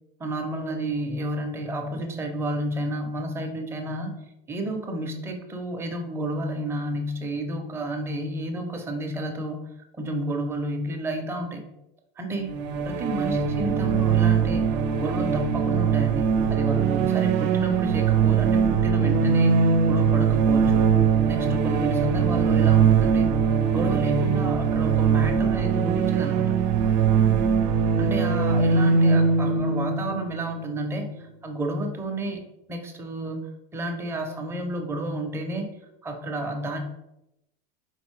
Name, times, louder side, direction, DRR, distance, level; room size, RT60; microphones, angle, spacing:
voice 1, 0.2-4.1 4.5-9.7 10.0-11.6 12.2-12.5 12.9-14.6 15.0-20.9 21.2-23.3 23.7-26.6 28.0-31.1 31.4-32.4 32.7-33.4 33.7-35.7 36.0-36.8, right 1 dB, 10° right, 3 dB, 0.5 m, -31 dB
sound 1, 12.5-31.1, right 6 dB, 80° right, 0.6 m, -21 dB
4.3 x 3.8 x 3.1 m, 0.88 s
cardioid pair, 155°, 21 cm